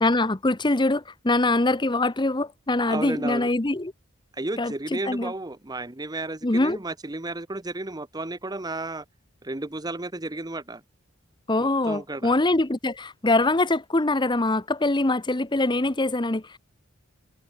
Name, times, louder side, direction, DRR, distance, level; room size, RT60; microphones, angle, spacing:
voice 1, 0.0-3.9 4.6-5.3 6.4-6.8 11.5-16.6, left 2 dB, 20° left, 1.0 m, -23 dB
voice 2, 2.9-3.5 4.3-9.0 9.4-10.8 11.6-12.3, right 2 dB, 20° right, 1.0 m, -33 dB
head